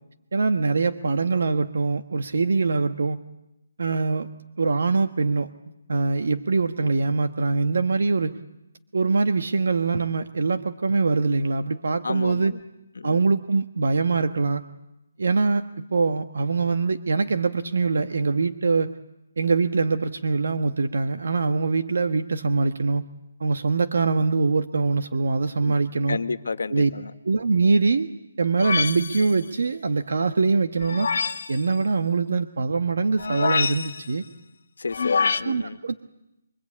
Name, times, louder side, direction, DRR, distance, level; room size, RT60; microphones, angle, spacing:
voice 1, 0.3-3.2 3.8-4.3 4.6-5.5 5.9-8.4 8.9-12.5 13.0-14.6 15.2-15.6 15.9-19.0 19.4-23.0 23.4-26.2 26.7-26.9 27.2-28.1 28.4-31.1 31.5-34.2 35.4-36.0, right 4 dB, 60° right, 7 dB, 1.4 m, -23 dB
voice 2, 12.0-12.6 12.9-13.2 25.6-25.7 26.1-27.1 34.8-35.8, left 4 dB, 80° left, 10 dB, 1.6 m, -31 dB
sound 1, 28.6-29.4 30.8-31.6 33.2-34.1 34.9-35.4, left 5 dB, 55° left, 1.2 m, -25 dB
29.0 x 24.0 x 8.7 m, 0.90 s
hypercardioid pair, 175°, 0 cm